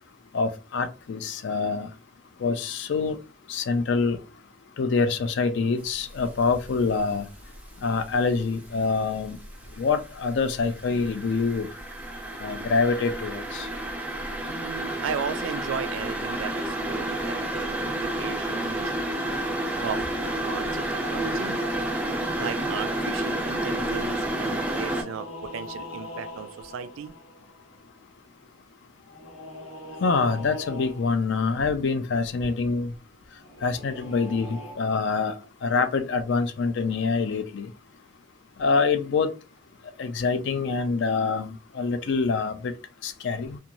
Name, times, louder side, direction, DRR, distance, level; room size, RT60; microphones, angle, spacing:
voice 1, 0.3-1.9 2.4-3.2 3.5-4.2 4.8-7.3 7.8-9.4 9.8-11.7 12.4-13.7 30.0-32.9 33.6-35.4 35.6-37.7 38.6-39.3 40.0-42.7 43.0-43.6, left 4 dB, 60° left, 0.4 m, -25 dB
sound 1, 6.0-6.4 6.7-8.3 8.6-25.0, right 1 dB, 5° right, 0.4 m, -30 dB
voice 2, 14.4-18.9 19.8-21.6 22.4-27.1, right 7 dB, 80° right, 0.3 m, -36 dB
sound 2, 24.5-28.0 29.0-31.5 33.4-34.7, left 1 dB, 90° left, 1.1 m, -42 dB
2.5 x 2.2 x 2.9 m
head